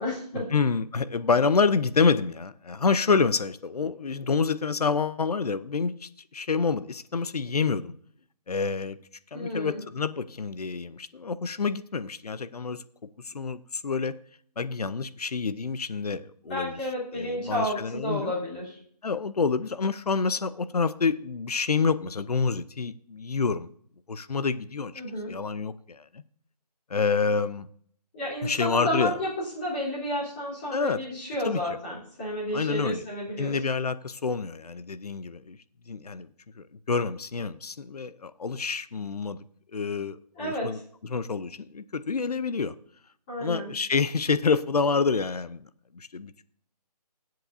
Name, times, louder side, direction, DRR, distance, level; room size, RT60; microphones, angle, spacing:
voice 1, 0.0-0.5 9.3-9.8 16.5-18.8 24.9-25.3 28.1-33.6 40.4-40.8 43.3-43.7, left 1 dB, 15° left, 3.6 m, -31 dB
voice 2, 0.5-7.9 8.5-9.0 9.3-12.8 13.2-14.1 14.6-16.8 17.1-18.3 19.0-23.7 24.1-24.9 25.3-26.0 26.9-27.7 28.4-29.1 30.7-31.0 31.4-31.6 32.5-33.0 33.4-35.6 35.9-36.3 36.6-39.4 39.7-42.7 43.4-45.6 45.9-46.4, left 5 dB, 65° left, 0.7 m, -27 dB
22.5 x 7.7 x 2.7 m
figure-of-eight pair, 175°, 21 cm